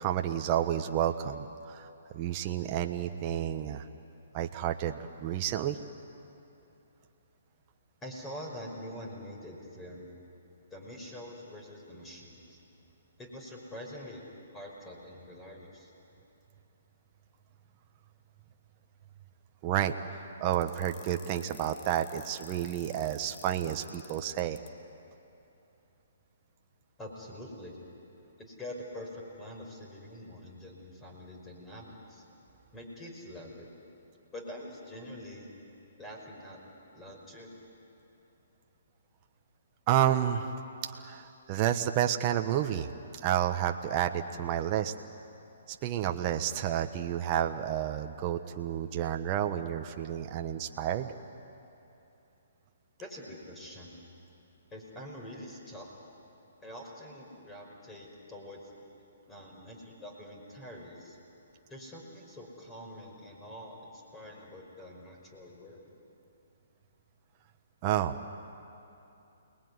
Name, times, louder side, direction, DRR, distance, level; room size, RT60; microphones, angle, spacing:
voice 1, 0.0-1.9 2.1-3.8 4.3-5.8 19.6-24.6 39.9-40.5 40.8-42.9 43.2-44.9 45.8-51.1 67.8-68.2, right 11 dB, 30° right, 5 dB, 1.3 m, -30 dB
voice 2, 8.0-10.1 10.7-12.6 13.2-14.2 14.5-15.9 27.0-27.8 28.4-32.2 32.7-33.7 34.3-35.5 36.0-37.5 53.0-54.0 54.7-55.9 56.6-58.7 59.3-61.2 61.7-65.9, left 1 dB, 15° left, 0 dB, 5.2 m, -45 dB
sound 1, 20.5-24.7, left 10 dB, 30° left, 1.6 m, -52 dB
29.5 x 20.5 x 9.7 m, 2.8 s
hypercardioid pair, 145°, 0 cm